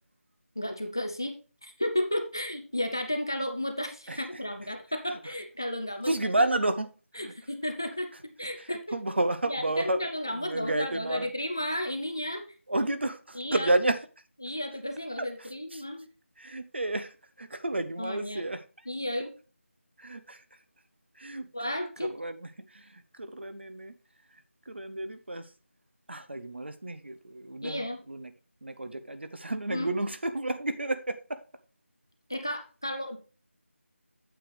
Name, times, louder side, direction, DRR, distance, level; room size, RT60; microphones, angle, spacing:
voice 1, 0.6-1.4 1.6-6.1 7.2-8.1 8.4-8.8 9.5-12.4 13.4-13.7 14.4-16.1 18.0-18.4 18.9-19.3 21.5-22.1 27.6-28.0 29.7-29.9 32.3-33.2, left 1 dB, 20° left, 0.4 m, -33 dB
voice 2, 4.1-4.4 6.0-7.3 8.6-11.3 12.7-14.0 15.4-15.8 16.4-18.6 20.0-20.4 21.1-21.7 22.0-23.9 24.3-25.5 26.1-28.3 28.6-31.4, right 2 dB, 55° right, 0.8 m, -31 dB
8.9 x 7.0 x 3.3 m
figure-of-eight pair, 180°, 7 cm